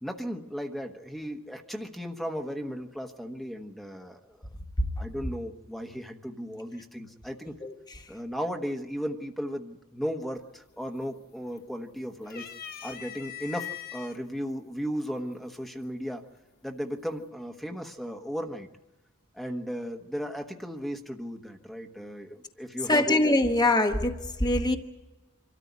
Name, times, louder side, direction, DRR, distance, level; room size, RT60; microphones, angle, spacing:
voice 1, 0.0-4.4 5.0-7.5 8.1-12.5 12.8-16.2 16.6-18.7 19.3-23.0, equal, ahead, 1.2 m, -36 dB
sound 1, 10.4-10.8 11.1-11.8 12.2-14.2 15.0-15.1 16.4-16.8, left 11 dB, 45° left, 1.3 m, -41 dB
voice 2, 22.9-24.8, left 2 dB, 20° left, 1.1 m, -23 dB
26.0 x 13.5 x 9.4 m
head